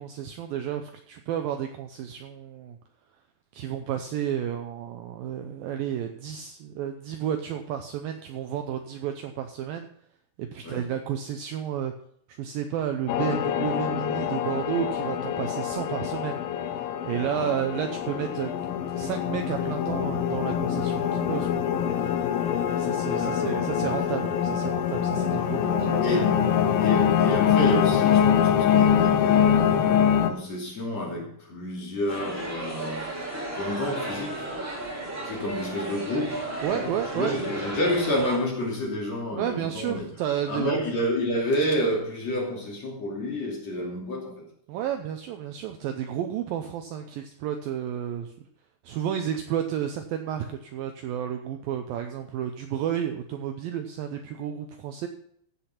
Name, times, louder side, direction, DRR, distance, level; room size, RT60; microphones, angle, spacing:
voice 1, 0.0-2.8 3.5-9.9 10.4-11.9 12.3-16.4 17.1-18.5 18.9-21.7 22.0-22.1 22.7-26.4 36.6-37.4 39.3-40.8 44.7-48.3 48.8-55.1, right 9 dB, 80° right, 6 dB, 2.1 m, -31 dB
sound 1, 13.1-30.3, left 9 dB, 75° left, 2.3 m, -24 dB
voice 2, 22.8-23.7 26.0-26.4 26.8-34.5 35.3-40.1 40.5-44.4, equal, 45° left, -2 dB, 3.6 m, -30 dB
sound 2, 32.1-38.4, right 2 dB, 15° right, 2.8 m, -34 dB
15.0 x 6.1 x 5.7 m, 0.67 s
omnidirectional pair, 4.8 m